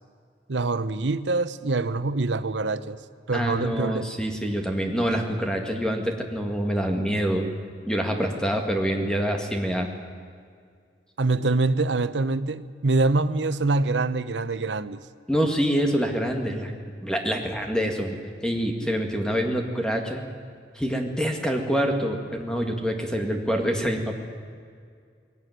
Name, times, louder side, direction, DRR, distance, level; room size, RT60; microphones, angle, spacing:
voice 1, 0.5-3.0 3.3-4.1 11.2-15.0, right 3 dB, 85° right, 0.9 m, -25 dB
voice 2, 3.3-7.5 7.9-9.9 15.3-16.7 17.0-18.2 18.4-20.3 20.7-24.2, equal, 5° left, 2.2 m, -26 dB
21.0 x 18.0 x 9.5 m
head